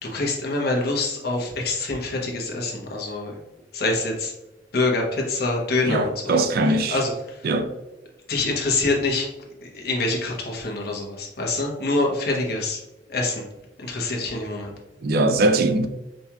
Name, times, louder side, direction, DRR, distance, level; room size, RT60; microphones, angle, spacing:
voice 1, 0.0-3.3 3.7-4.3 4.7-6.4 6.9-7.4 8.3-9.3 9.6-12.8 13.1-13.4 13.8-14.7, left 2 dB, 60° left, 1.0 m, -25 dB
voice 2, 5.9-7.0 7.4-7.7 15.0-15.9, right 2 dB, 60° right, 0.5 m, -21 dB
5.2 x 2.9 x 2.3 m
head